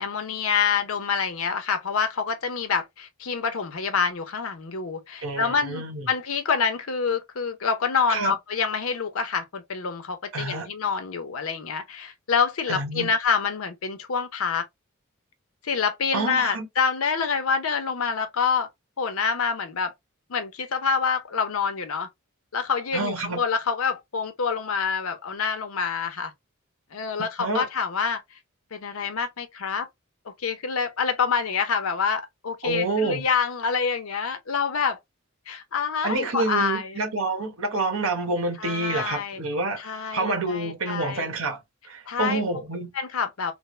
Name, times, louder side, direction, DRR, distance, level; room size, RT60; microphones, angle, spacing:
voice 1, 0.0-14.6 15.6-18.7 19.0-19.9 20.3-22.1 22.5-26.3 26.9-28.2 28.7-29.9 30.3-35.0 35.5-37.0 38.6-39.4 39.8-41.3 42.1-42.4 42.9-43.5, left 6 dB, 85° left, 0.7 m, -27 dB
voice 2, 5.2-6.1 8.1-8.3 10.3-10.7 12.7-13.1 16.1-16.7 22.9-23.4 27.4-27.6 32.6-33.3 36.0-39.8 40.1-41.6 41.8-42.9, right 3 dB, 85° right, 1.2 m, -28 dB
3.4 x 2.0 x 3.2 m
head